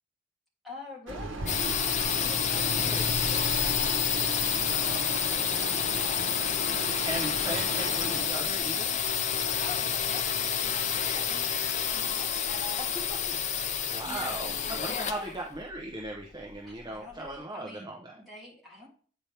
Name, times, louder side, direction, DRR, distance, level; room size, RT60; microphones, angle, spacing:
voice 1, 0.6-6.2 9.6-15.4 16.6-18.9, left 2 dB, ahead, -5 dB, 2.8 m, -45 dB
sound 1, 1.1-8.3, right 2 dB, 75° right, 1.1 m, -38 dB
sound 2, 1.5-17.1, left 8 dB, 40° left, 0.5 m, -29 dB
voice 2, 2.7-3.2 4.7-5.1 7.0-8.9 13.9-18.2, right 1 dB, 20° right, 0 dB, 0.8 m, -38 dB
8.8 x 4.4 x 3.4 m, 0.44 s
head